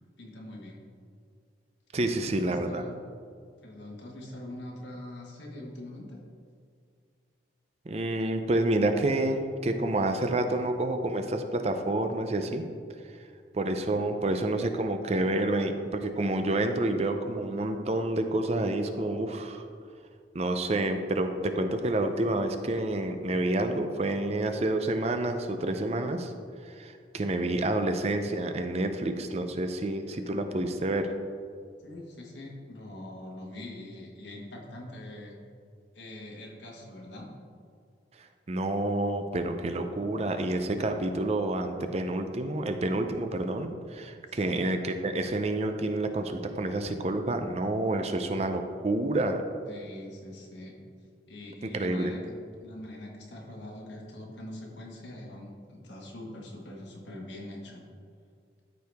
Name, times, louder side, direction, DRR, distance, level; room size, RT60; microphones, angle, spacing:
voice 1, 0.2-0.8 2.0-3.0 3.6-6.2 31.8-35.4 35.9-37.3 44.3-44.7 49.6-50.8 51.3-52.2 52.6-57.8, left 1 dB, 75° left, -1 dB, 1.6 m, -43 dB
voice 2, 1.9-2.8 7.9-12.6 13.5-19.6 20.3-26.3 26.6-31.1 38.2-49.4 51.7-52.1, right 2 dB, 35° right, 7 dB, 0.5 m, -29 dB
13.5 x 4.8 x 3.5 m, 2.2 s
head